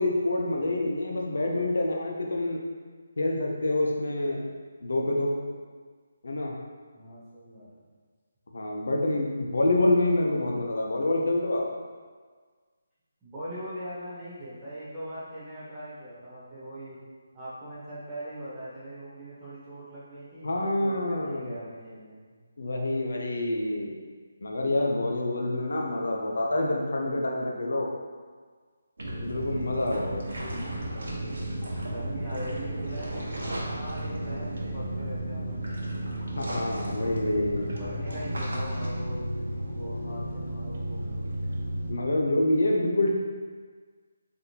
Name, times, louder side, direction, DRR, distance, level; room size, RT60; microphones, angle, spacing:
voice 1, 0.0-2.6 3.2-4.5 4.8-5.3 6.2-6.5 8.5-11.7 20.4-21.6 22.6-23.9 24.4-27.9 29.2-30.2 36.4-37.7 41.9-43.2, left 1 dB, 75° left, 0 dB, 0.6 m, -27 dB
voice 2, 6.9-7.7 13.2-17.0 17.3-22.4 31.9-35.6 37.7-41.5, right 1 dB, 10° right, -12 dB, 1.2 m, -41 dB
sound 1, 29.0-41.9, right 1 dB, 85° right, 1.0 m, -33 dB
4.0 x 3.4 x 2.8 m, 1.5 s
hypercardioid pair, 165°, 0 cm